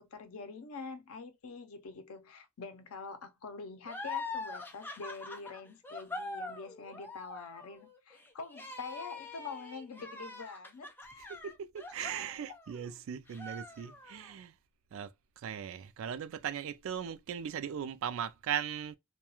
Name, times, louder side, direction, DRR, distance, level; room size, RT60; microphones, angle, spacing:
voice 1, 0.0-11.2 12.0-12.1, left 4 dB, 85° left, 0.5 m, -45 dB
sound 1, 3.8-12.9 13.3-14.3, left 3 dB, 10° left, 0.4 m, -43 dB
voice 2, 11.3-14.5 14.9-15.1 15.4-19.0, right 8 dB, 65° right, 0.3 m, -38 dB
2.3 x 2.2 x 2.8 m
head